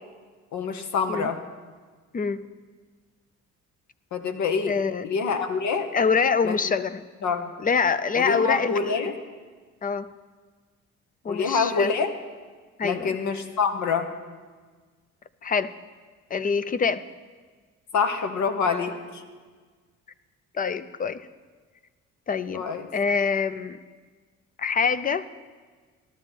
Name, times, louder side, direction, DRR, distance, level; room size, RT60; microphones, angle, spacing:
voice 1, 0.5-1.4 4.1-4.7 5.0-5.9 6.4-6.6 7.2-7.5 8.1-9.1 11.3-12.1 12.8-14.1 17.9-19.2 22.5-22.9, left 5 dB, 70° left, 7 dB, 1.2 m, -26 dB
voice 2, 4.7-5.0 5.9-7.0 7.6-9.0 9.8-10.1 11.2-11.9 12.8-13.1 15.4-15.7 16.3-17.0 20.5-21.3 22.3-22.6 22.9-23.8 24.6-25.3, left 5 dB, 30° left, 15 dB, 0.5 m, -25 dB
14.0 x 12.5 x 4.5 m, 1.5 s
cardioid pair, 90°, 30 cm